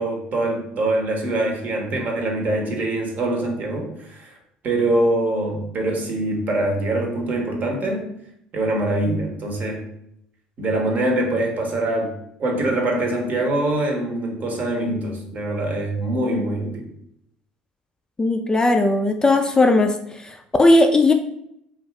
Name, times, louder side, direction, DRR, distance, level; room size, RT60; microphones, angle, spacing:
voice 1, 0.0-4.4 4.6-8.1 8.5-9.8 10.6-16.9, right 1 dB, 50° right, 2 dB, 0.8 m, -24 dB
voice 2, 18.2-19.9 20.2-21.1, left 2 dB, 20° left, 5 dB, 0.3 m, -17 dB
2.6 x 2.4 x 3.1 m, 0.74 s
hypercardioid pair, 65°, 4 cm